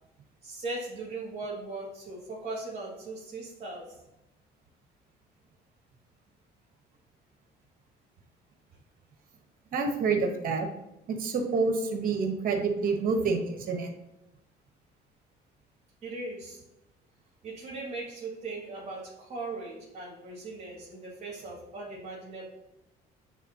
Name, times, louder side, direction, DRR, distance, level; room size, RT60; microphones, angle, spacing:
voice 1, 0.4-4.0 16.0-16.6 17.4-22.4, right 2 dB, 40° right, -7 dB, 2.4 m, -39 dB
voice 2, 9.7-10.7 11.1-13.9, right 4 dB, 55° right, 4 dB, 1.3 m, -28 dB
9.0 x 4.0 x 2.9 m, 0.91 s
cardioid pair, 110°, 17 cm